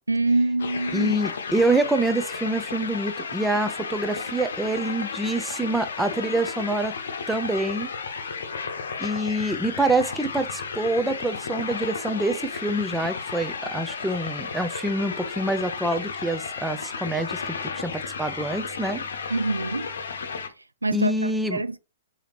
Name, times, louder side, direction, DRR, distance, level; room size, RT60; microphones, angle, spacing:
voice 1, 0.1-1.2 19.3-19.9 20.8-21.8, right 2 dB, 85° right, 0.3 m, -25 dB
sound 1, 0.6-20.5, left 5 dB, 70° left, 0.8 m, -33 dB
voice 2, 0.9-6.9 7.3-7.9 9.0-19.0 20.9-21.6, right 1 dB, 5° right, 0.4 m, -26 dB
4.9 x 2.8 x 2.8 m
figure-of-eight pair, 110°, 0 cm